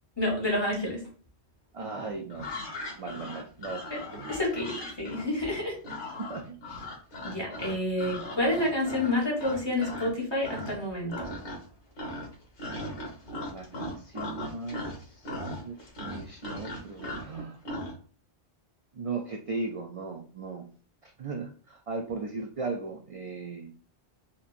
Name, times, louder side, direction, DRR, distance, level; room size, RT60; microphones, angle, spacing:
voice 1, 0.2-1.0 4.3-5.8 7.2-11.3, left 1 dB, 25° left, -2 dB, 1.4 m, -29 dB
voice 2, 1.7-2.5 3.0-3.8 4.1-4.2 6.2-6.8 13.5-17.6 18.9-20.6 21.0-23.7, right 3 dB, 55° right, 2 dB, 0.3 m, -37 dB
sound 1, 2.3-10.1 10.4-10.8 11.1-11.7 12.0-17.9, left 1 dB, 85° left, 1.7 m, -38 dB
4.4 x 2.8 x 2.5 m, 0.41 s
omnidirectional pair, 1.1 m